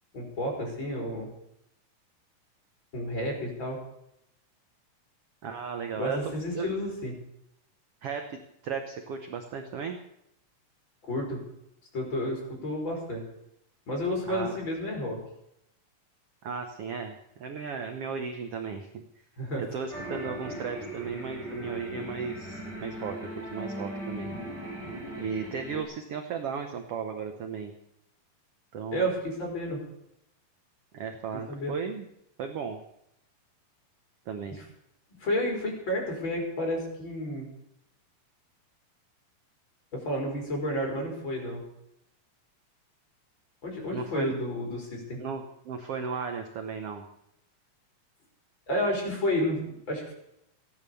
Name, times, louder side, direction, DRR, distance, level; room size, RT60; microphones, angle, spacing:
voice 1, 0.1-1.3 2.9-3.8 6.0-7.1 11.0-11.4 11.9-13.3 13.9-15.2 19.4-19.6 28.9-29.8 31.5-31.8 35.2-37.5 39.9-41.6 43.6-45.2 48.7-50.1, left 1 dB, 35° left, 0 dB, 5.2 m, -31 dB
voice 2, 5.4-6.2 6.5-6.7 8.0-10.0 14.2-14.6 16.4-19.0 19.6-24.3 25.1-27.7 28.7-29.1 30.9-32.1 32.4-32.8 34.3-34.6 43.9-44.3 45.2-47.0, right 6 dB, 60° right, 6 dB, 1.6 m, -35 dB
sound 1, 19.9-25.8, right 1 dB, 30° right, 6.5 m, -38 dB
16.0 x 10.5 x 6.9 m, 0.79 s
omnidirectional pair, 3.9 m